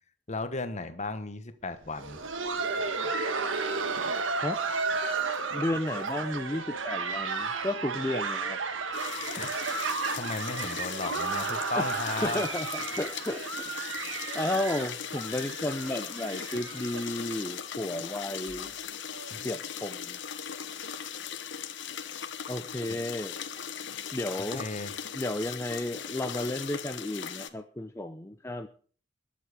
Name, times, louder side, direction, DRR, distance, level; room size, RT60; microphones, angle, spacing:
voice 1, 0.3-2.2 9.4-9.5 10.1-12.4 19.3-19.5 22.9-23.0 24.5-25.2, left 3 dB, 35° left, 10 dB, 1.3 m, -35 dB
Laughter, 1.8-17.5 17.8-17.9 18.5-18.6 19.1-19.3 20.4-20.5, right 4 dB, 90° right, 1.5 m, -33 dB
voice 2, 5.5-8.6 11.8-11.9 12.2-12.7 13.0-13.4 14.3-18.7 19.4-20.2 22.5-23.3 24.1-24.7 25.1-28.7, left 1 dB, 15° left, 6 dB, 0.7 m, -33 dB
sound 1, 8.9-27.5, left 8 dB, 65° left, 1.1 m, -39 dB
21.0 x 7.5 x 5.1 m, 0.43 s
head